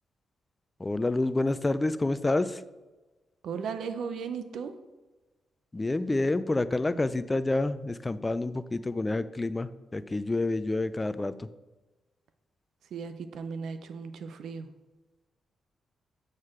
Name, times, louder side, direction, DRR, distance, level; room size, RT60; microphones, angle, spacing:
voice 1, 0.8-2.6 5.7-11.5, left 2 dB, 25° left, 15 dB, 0.4 m, -28 dB
voice 2, 3.4-4.7 12.9-14.7, right 6 dB, 75° right, 9 dB, 0.6 m, -36 dB
6.5 x 6.2 x 3.7 m, 1.2 s
supercardioid pair, 45°, 0 cm